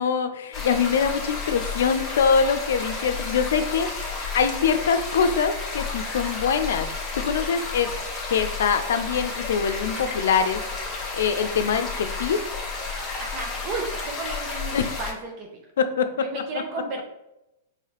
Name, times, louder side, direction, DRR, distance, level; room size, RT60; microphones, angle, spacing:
voice 1, 0.0-3.9 4.3-6.9 7.2-8.0 8.3-10.6 11.1-12.4 14.7-14.9 15.8-16.4, left 6 dB, 75° left, 9 dB, 0.5 m, -23 dB
sound 1, 0.5-15.1, left 4 dB, 15° left, 1.5 m, -32 dB
voice 2, 13.2-15.5 16.2-17.0, right 3 dB, 40° right, 1 dB, 0.7 m, -33 dB
4.7 x 3.2 x 3.0 m, 0.89 s
hypercardioid pair, 130°, 0 cm